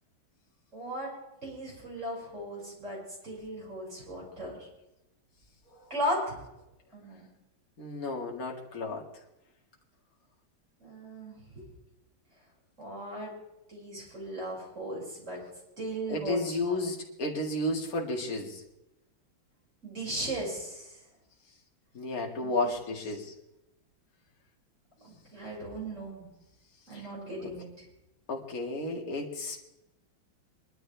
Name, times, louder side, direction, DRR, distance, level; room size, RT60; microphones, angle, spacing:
voice 1, 0.7-1.1 1.4-4.7 5.9-6.4 6.9-7.3 10.8-11.7 12.8-13.4 13.7-15.4 15.8-16.8 19.8-20.9 22.4-22.5 25.0-26.3 26.9-27.7, right 1 dB, 35° right, -4 dB, 6.3 m, -37 dB
voice 2, 7.8-9.1 16.1-18.6 21.9-23.3 26.9-27.0 28.3-29.6, left 2 dB, 45° left, -1 dB, 2.5 m, -32 dB
24.0 x 12.0 x 3.4 m, 0.91 s
omnidirectional pair, 2.2 m